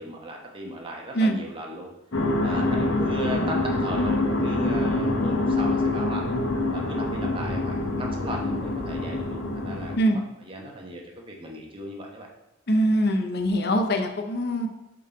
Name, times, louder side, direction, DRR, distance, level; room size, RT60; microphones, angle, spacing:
voice 1, 0.0-1.9 2.4-6.2 6.7-12.3, right 1 dB, 25° right, 0 dB, 1.0 m, -36 dB
sound 1, 2.1-10.0, left 2 dB, 80° left, 0.9 m, -25 dB
voice 2, 12.7-14.7, right 1 dB, 55° left, 6 dB, 0.7 m, -23 dB
7.5 x 3.9 x 4.3 m, 0.97 s
head